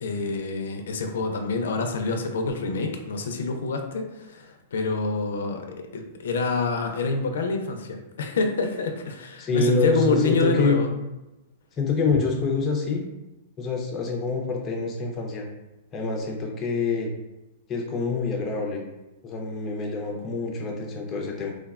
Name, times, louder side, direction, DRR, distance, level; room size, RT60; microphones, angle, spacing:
voice 1, 0.0-10.9, left 3 dB, 85° left, 4 dB, 0.4 m, -27 dB
voice 2, 9.4-10.8 11.8-13.0 13.6-15.5 15.9-17.1 17.7-18.8 19.2-21.5, left 4 dB, 15° left, 0 dB, 0.4 m, -26 dB
3.2 x 2.1 x 2.3 m, 1.0 s
supercardioid pair, 165°, 0 cm